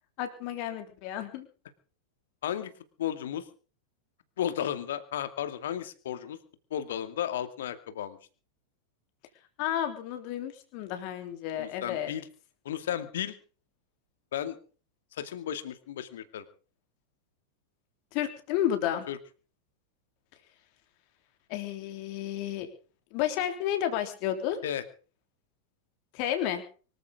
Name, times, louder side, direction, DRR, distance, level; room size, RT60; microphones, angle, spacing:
voice 1, 0.2-1.4 9.6-12.1 18.1-19.1 21.5-22.7 23.1-24.6 26.1-26.6, left 11 dB, 45° left, 6 dB, 3.3 m, -31 dB
voice 2, 3.0-3.4 4.4-6.4 6.7-8.2 11.5-12.3 12.6-13.4 14.3-14.6 15.2-16.4 19.1-19.2 24.6-24.8, left 10 dB, 60° left, 11 dB, 2.3 m, -33 dB
24.5 x 14.5 x 3.7 m, 0.39 s
figure-of-eight pair, 90°, 0 cm